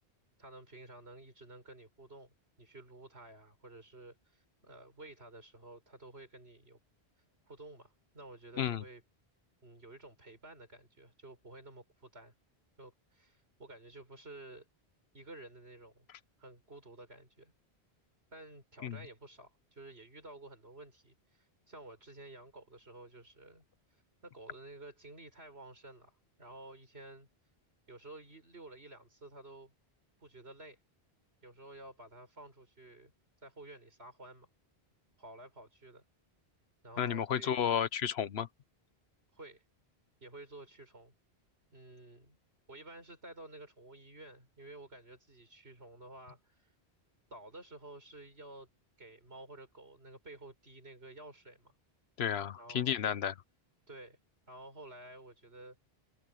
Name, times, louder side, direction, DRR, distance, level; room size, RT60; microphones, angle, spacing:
voice 1, 0.4-6.8 7.5-9.0 9.6-12.3 12.8-14.7 15.1-16.1 16.4-17.5 18.3-23.6 24.2-27.3 27.9-29.7 30.2-30.8 31.4-33.1 33.4-34.5 35.2-36.0 36.8-37.7 39.3-39.6 40.2-41.1 41.7-42.4 42.7-46.7 47.3-48.7 49.0-51.7 52.5-53.3 53.9-54.2 54.5-55.8, right 2 dB, 75° right, 5.7 m, -52 dB
voice 2, 37.0-38.5 52.2-53.3, left 9 dB, 80° left, 1.0 m, -32 dB
omnidirectional pair, 1.1 m